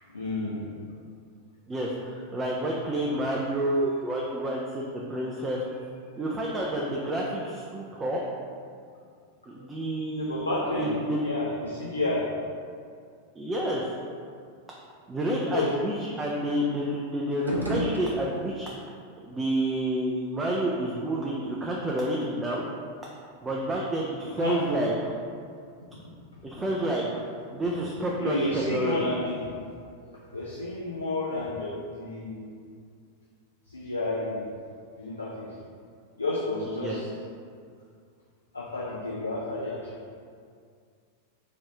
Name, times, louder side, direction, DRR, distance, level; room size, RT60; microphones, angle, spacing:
voice 1, 0.1-0.8 10.1-10.9 11.2-12.3 15.5-15.7 16.1-16.2 24.4-24.6 28.2-29.5 30.0-32.5 33.7-34.5 35.0-35.5 36.2-37.1 38.5-40.0, left 2 dB, 80° left, -5 dB, 0.4 m, -31 dB
voice 2, 1.7-5.6 6.2-8.2 9.5-10.4 10.8-11.2 13.4-13.9 15.1-18.9 19.2-22.6 23.4-25.2 26.4-27.1 27.5-29.1 36.8-37.0, right 1 dB, 15° right, -3 dB, 0.4 m, -29 dB
sound 1, 17.3-18.7, equal, 90° right, 0.5 m, -32 dB
3.3 x 2.5 x 3.6 m, 2.2 s
figure-of-eight pair, 90°, 0 cm